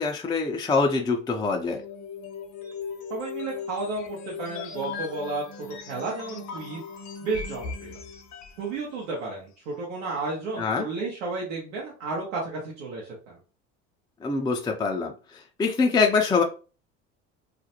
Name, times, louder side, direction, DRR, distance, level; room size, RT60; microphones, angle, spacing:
voice 1, 0.0-1.8 10.6-10.9 14.2-16.4, left 4 dB, 10° left, 2 dB, 0.4 m, -24 dB
sound 1, 1.5-8.7, left 6 dB, 55° left, 0.8 m, -38 dB
voice 2, 3.1-6.8 7.2-8.0 8.6-13.4, right 3 dB, 85° right, -4 dB, 0.9 m, -32 dB
2.4 x 2.1 x 2.8 m, 0.35 s
hypercardioid pair, 70°, 34 cm